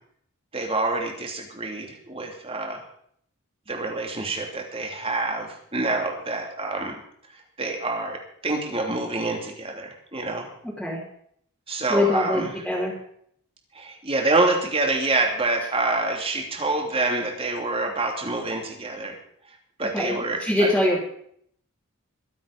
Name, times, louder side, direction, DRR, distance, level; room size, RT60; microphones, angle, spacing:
voice 1, 0.5-2.8 3.7-6.9 7.3-10.5 11.7-12.5 13.7-19.1 19.8-20.7, right 2 dB, 25° right, 1 dB, 3.1 m, -27 dB
voice 2, 11.9-13.0 19.9-21.0, left 1 dB, ahead, -7 dB, 3.2 m, -23 dB
24.0 x 8.2 x 5.3 m, 0.66 s
head